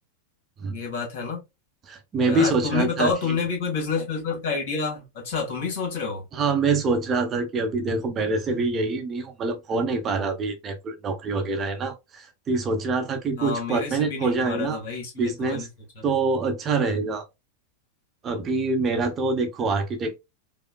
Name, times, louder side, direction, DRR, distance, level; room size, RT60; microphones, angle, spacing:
voice 1, 0.7-1.4 2.2-6.2 13.4-15.6, left 5 dB, 55° left, 1.8 m, -28 dB
voice 2, 1.8-3.4 6.3-14.8 15.2-15.7 16.0-17.2 18.2-20.2, right 3 dB, 25° right, 0.9 m, -25 dB
5.0 x 2.3 x 2.3 m
figure-of-eight pair, 90°, 0 cm